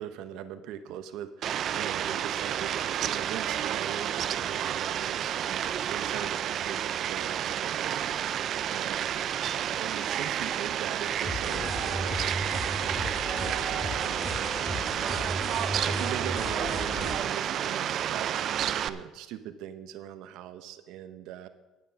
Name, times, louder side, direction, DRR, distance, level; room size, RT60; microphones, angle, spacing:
voice 1, 0.0-9.1 9.8-12.2 12.6-13.0 13.3-14.4 15.0-21.5, right 10 dB, 75° right, 10 dB, 0.8 m, -41 dB
Fowl, 1.4-18.9, right 10 dB, 50° right, 0.4 m, -30 dB
sound 1, 11.2-17.1, left 1 dB, 15° left, 2.0 m, -35 dB
11.0 x 9.3 x 5.9 m, 1.1 s
cardioid pair, 135°, 0 cm